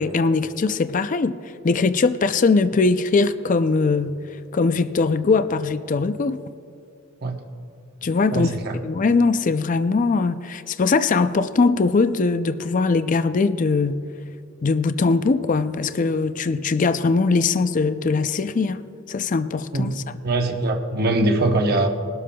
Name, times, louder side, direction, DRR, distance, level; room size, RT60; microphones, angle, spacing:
voice 1, 0.0-1.3 1.6-4.2 4.5-6.4 8.0-14.0 14.6-18.8 19.1-20.0, left 4 dB, 40° left, 11 dB, 0.4 m, -21 dB
voice 2, 8.3-8.8 19.7-19.9 20.2-21.9, right 2 dB, 50° right, 4 dB, 1.0 m, -22 dB
21.0 x 12.5 x 2.3 m, 2.6 s
head